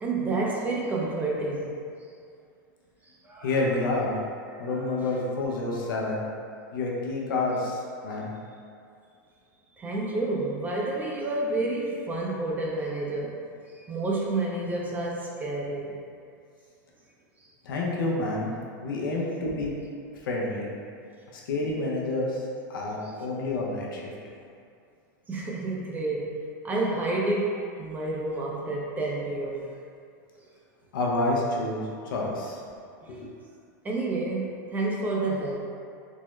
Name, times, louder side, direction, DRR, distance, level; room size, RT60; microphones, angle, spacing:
voice 1, 0.0-1.7 3.2-4.0 4.5-5.2 5.7-5.9 9.8-13.4 13.7-16.0 25.3-29.7 33.0-33.2 33.8-35.6, right 2 dB, 15° right, -3 dB, 0.4 m, -30 dB
voice 2, 3.4-4.2 4.6-6.2 6.7-8.3 17.6-18.5 18.8-19.7 20.3-20.7 21.3-22.3 22.7-24.1 30.9-32.6 33.1-33.2, left 2 dB, 85° left, -3 dB, 0.6 m, -28 dB
3.5 x 2.1 x 3.0 m, 2.4 s
supercardioid pair, 135°, 11 cm